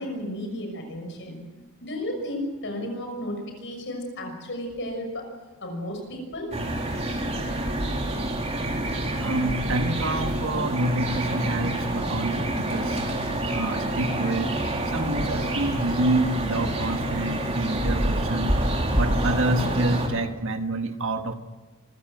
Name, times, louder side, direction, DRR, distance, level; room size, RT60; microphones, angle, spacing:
voice 1, 0.0-1.4 1.8-5.3 5.6-6.5, left 1 dB, 60° left, 4 dB, 6.3 m, -33 dB
sound 1, 6.5-20.1, right 1 dB, 30° right, 3.6 m, -27 dB
voice 2, 9.2-13.2 13.5-14.5 14.8-18.6 19.0-21.3, right 2 dB, 65° right, 7 dB, 1.6 m, -27 dB
25.5 x 15.5 x 8.0 m, 1.2 s
head